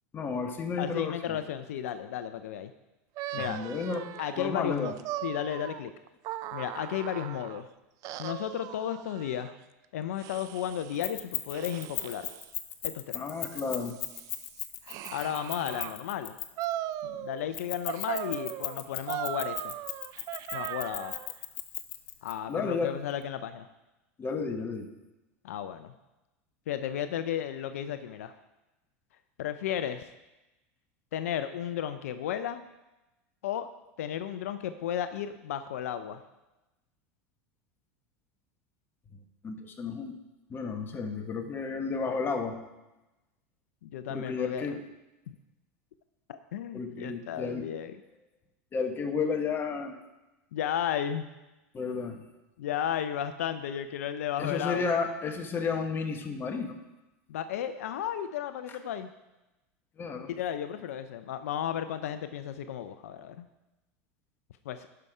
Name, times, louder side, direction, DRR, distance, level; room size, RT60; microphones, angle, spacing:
voice 1, 0.1-1.4 3.4-4.1 4.4-5.0 13.1-14.0 22.5-22.9 24.2-24.9 39.1-40.1 40.5-42.6 44.1-44.8 46.7-47.6 48.7-50.0 51.7-52.2 54.4-56.8 60.0-60.3, left 5 dB, 30° left, 5 dB, 1.3 m, -32 dB
voice 2, 0.8-2.7 3.3-3.6 4.2-4.9 5.2-5.9 6.5-7.7 8.2-9.5 9.9-12.3 12.8-13.2 15.1-16.3 17.0-19.7 20.5-21.2 22.2-23.7 25.4-25.9 26.7-28.3 29.4-30.0 31.1-32.7 33.4-33.7 34.0-36.2 43.8-44.8 45.3-45.4 46.3-48.0 50.5-51.3 52.6-54.9 57.3-59.1 60.4-63.4 64.7-64.9, left 10 dB, 80° left, 10 dB, 0.5 m, -34 dB
sound 1, 3.2-7.6 8.0-9.6 10.2-11.1 11.5-12.5 13.1-16.0 16.6-17.6 17.9-21.3, right 13 dB, 50° right, 0.4 m, -39 dB
Keys jangling, 11.0-16.7 17.5-22.3, left 15 dB, 65° left, 0.9 m, -36 dB
12.0 x 5.7 x 4.8 m, 1.0 s
hypercardioid pair, 110°, 8 cm